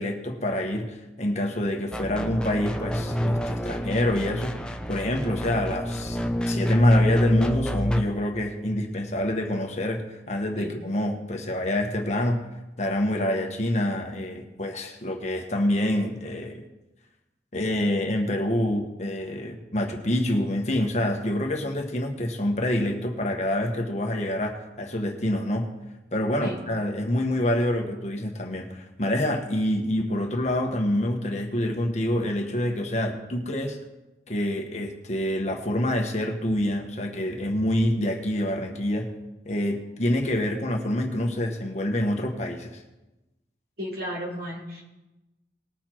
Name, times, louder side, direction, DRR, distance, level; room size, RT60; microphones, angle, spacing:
voice 1, 0.0-4.5 4.9-12.4 12.8-16.7 17.5-25.7 26.1-33.8 34.3-39.1 39.4-42.8, left 1 dB, 40° left, 2 dB, 1.2 m, -27 dB
sound 1, 1.9-8.0, equal, 5° left, 0.6 m, -26 dB
voice 2, 43.8-44.8, equal, 55° right, -5 dB, 3.6 m, -34 dB
20.0 x 6.7 x 4.5 m, 1.0 s
head